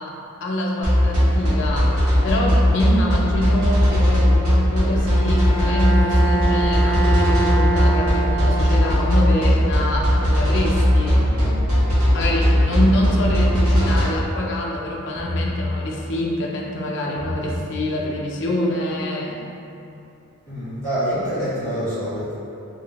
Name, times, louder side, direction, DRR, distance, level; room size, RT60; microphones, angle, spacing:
voice 1, 0.0-11.2 12.1-19.4, left 1 dB, 55° left, -2 dB, 0.4 m, -25 dB
sound 1, 0.8-14.0, equal, 70° right, 0.9 m, -18 dB
Bowed string instrument, 5.0-9.5, right 2 dB, 15° left, 0.8 m, -25 dB
sound 2, 11.1-11.6 13.0-13.7 15.1-15.7 17.0-17.7, left 1 dB, 55° right, 1.3 m, -29 dB
voice 2, 20.4-22.3, equal, 15° right, -16 dB, 1.4 m, -26 dB
2.8 x 2.5 x 2.8 m, 2.8 s
head